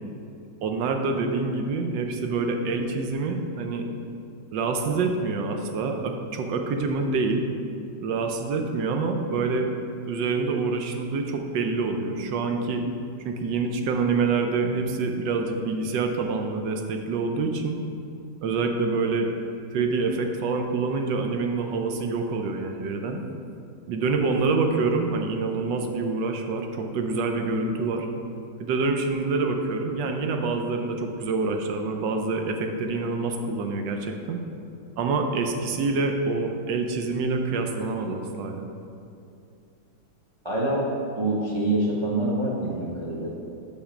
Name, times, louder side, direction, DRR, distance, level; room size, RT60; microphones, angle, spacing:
voice 1, 0.6-3.9 4.5-7.4 8.0-9.7 10.0-12.8 13.2-17.8 18.4-19.3 19.7-23.2 23.9-28.1 28.6-34.4 35.0-38.7, right 4 dB, 75° right, 4 dB, 1.3 m, -26 dB
voice 2, 40.4-40.8 41.2-43.3, right 2 dB, 25° right, -4 dB, 0.7 m, -25 dB
6.5 x 5.6 x 5.0 m, 2.6 s
omnidirectional pair, 2.0 m